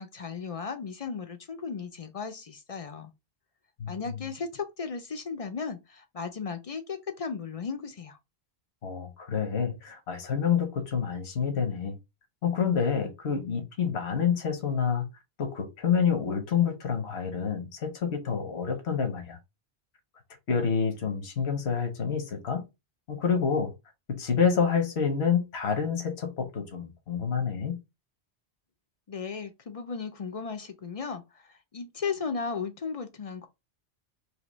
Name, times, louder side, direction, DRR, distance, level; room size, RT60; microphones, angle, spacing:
voice 1, 0.0-3.1 3.9-8.2 29.1-31.2 31.5-33.5, left 5 dB, 45° left, 0.5 m, -35 dB
voice 2, 3.8-4.2 8.8-12.0 12.4-15.1 15.4-19.4 20.5-22.6 23.1-23.7 24.1-27.8, left 6 dB, 75° left, 1.2 m, -28 dB
3.4 x 2.8 x 4.0 m
omnidirectional pair, 1.1 m